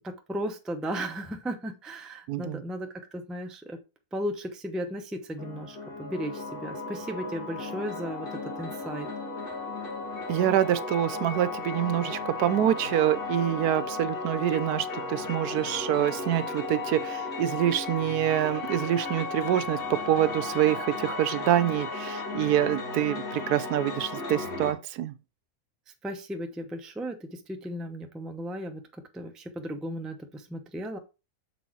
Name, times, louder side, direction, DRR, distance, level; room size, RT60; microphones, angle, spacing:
voice 1, 0.0-3.8 4.1-9.1 26.0-28.8 29.1-31.0, equal, ahead, 0.4 m, -35 dB
voice 2, 2.3-2.6 10.3-25.1, right 12 dB, 80° right, 1.2 m, -26 dB
sound 1, 5.4-24.7, left 3 dB, 70° left, 2.3 m, -35 dB
6.8 x 4.1 x 4.6 m
omnidirectional pair, 1.6 m